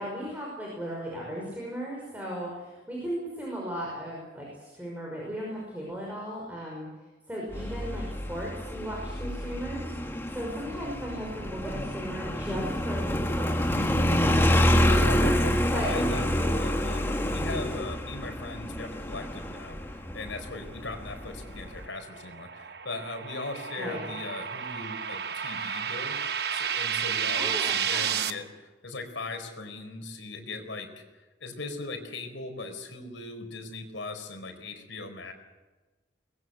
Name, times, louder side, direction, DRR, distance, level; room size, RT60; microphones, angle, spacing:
voice 1, 0.0-6.9 7.3-9.9 10.3-15.0 15.7-16.1 23.8-24.1 27.4-28.2, equal, 10° right, -3 dB, 5.6 m, -36 dB
Motorcycle, 7.5-21.8, equal, 10° left, 1.6 m, -27 dB
voice 2, 14.9-26.2 26.5-31.0 31.4-35.3, left 3 dB, 80° left, 6 dB, 4.4 m, -39 dB
sound 1, 21.5-28.3, right 7 dB, 55° right, 1.1 m, -32 dB
23.5 x 20.5 x 8.0 m, 1.2 s
head